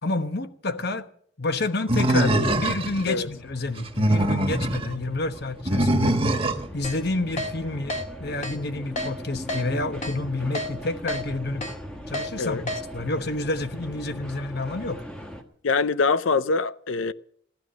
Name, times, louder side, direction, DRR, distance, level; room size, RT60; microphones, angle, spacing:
voice 1, 0.0-1.1 1.4-6.2 6.7-11.7 12.1-12.6 12.9-15.0, left 2 dB, 55° left, 1.1 m, -29 dB
Animal, 1.9-3.0 3.8-4.9 5.7-6.7, right 1 dB, 25° right, 1.5 m, -22 dB
sound 1, 2.1-15.4, equal, 5° left, 1.4 m, -41 dB
Keyboard (musical), 6.8-7.0 7.4-7.5 7.9-8.0 8.4-8.6 9.0-9.1 9.5-9.6 10.0-10.1 10.5-10.7 11.1-11.2 11.6-11.7 12.1-12.3 12.7-12.8, left 1 dB, 35° left, 1.9 m, -29 dB
voice 2, 15.6-17.1, left 4 dB, 75° left, 0.6 m, -24 dB
16.0 x 12.0 x 6.4 m
head